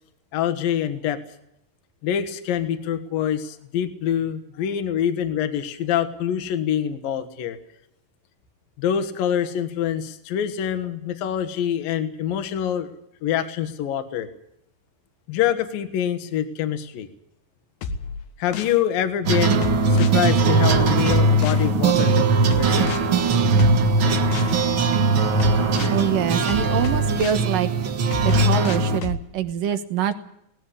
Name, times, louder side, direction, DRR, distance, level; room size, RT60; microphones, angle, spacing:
voice 1, 0.3-1.2 2.0-7.6 8.8-14.3 15.3-17.1 18.4-23.0, left 9 dB, 65° left, 9 dB, 3.1 m, -25 dB
sound 1, 17.8-18.8 19.6-20.2 20.7-21.7 22.5-23.0 23.6-24.6 25.4-26.0 26.5-27.5 28.1-29.2, left 4 dB, 80° left, 3.4 m, -31 dB
sound 2, 19.2-29.0, right 3 dB, 90° right, 1.1 m, -20 dB
voice 2, 25.9-27.7 28.2-30.2, right 9 dB, 65° right, 10 dB, 2.7 m, -24 dB
19.0 x 16.0 x 10.0 m, 0.76 s
omnidirectional pair, 4.7 m